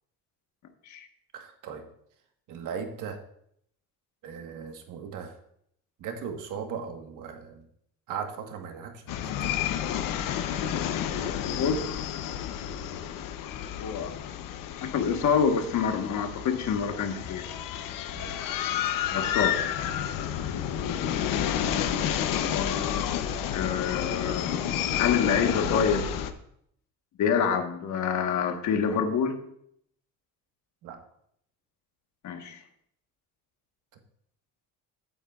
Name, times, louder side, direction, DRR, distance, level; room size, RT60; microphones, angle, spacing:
voice 1, 1.3-1.9 2.5-3.2 4.2-5.3 6.0-7.7 8.1-9.5 18.1-18.4 19.1-19.3 20.4-20.6 30.8-31.0, right 6 dB, 70° right, 4 dB, 1.4 m, -38 dB
cyclone coneyisland, 9.1-26.3, left 10 dB, 90° left, 0.8 m, -30 dB
voice 2, 11.5-11.9 13.8-14.1 14.8-17.5 19.1-19.6 22.5-24.6 25.0-26.0 27.2-29.4 32.2-32.6, left 6 dB, 60° left, 5 dB, 1.3 m, -27 dB
15.5 x 9.3 x 2.4 m, 0.71 s
cardioid pair, 160°, 32 cm